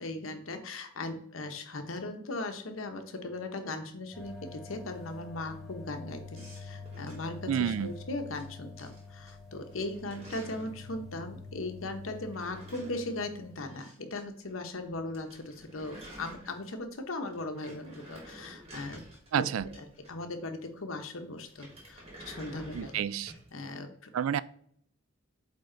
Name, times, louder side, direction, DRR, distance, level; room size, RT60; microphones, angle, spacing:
voice 1, 0.0-19.0 19.7-23.0 23.5-24.1, left 2 dB, 85° left, 1.0 m, -38 dB
sound 1, 4.1-13.6, left 4 dB, ahead, 1.2 m, -47 dB
sound 2, 6.3-8.4 8.8-9.3 9.6-10.8 12.1-14.2 14.5-14.6 14.9-15.0 15.1-16.9 17.3-20.4 21.4-23.5, right 1 dB, 30° right, 2.1 m, -50 dB
voice 2, 7.5-7.9 19.3-19.7 22.7-23.3 24.1-24.4, right 9 dB, 90° right, 0.3 m, -29 dB
8.6 x 3.5 x 3.9 m
head